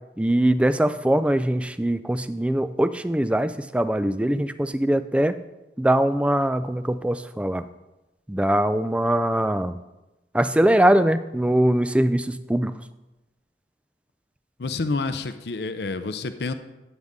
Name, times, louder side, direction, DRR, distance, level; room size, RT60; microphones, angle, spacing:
voice 1, 0.2-5.4 5.8-7.6 8.3-9.8 10.3-12.7, right 1 dB, 5° right, 12 dB, 0.3 m, -22 dB
voice 2, 14.6-16.5, left 3 dB, 60° left, 10 dB, 0.6 m, -28 dB
13.0 x 7.9 x 3.6 m, 1.0 s
head